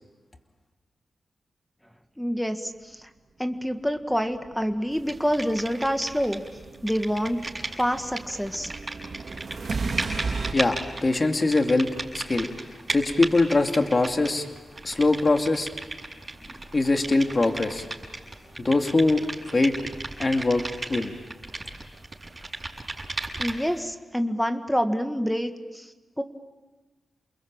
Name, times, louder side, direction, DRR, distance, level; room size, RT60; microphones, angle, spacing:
voice 1, 2.2-3.1 3.4-6.4 6.8-7.4 7.8-8.7 23.4-26.2, equal, 5° left, 7 dB, 1.8 m, -27 dB
sound 1, 4.1-10.5, right 4 dB, 55° right, 2.5 m, -35 dB
sound 2, 5.1-6.5 6.7-23.8, right 2 dB, 35° right, 6.5 m, -36 dB
voice 2, 10.5-12.5 12.9-14.5 14.8-15.7 16.7-17.8 18.6-19.8 20.2-20.6 20.9-21.1, left 2 dB, 35° left, 5 dB, 2.4 m, -22 dB
29.5 x 21.5 x 8.9 m, 1.3 s
cardioid pair, 75°, 0 cm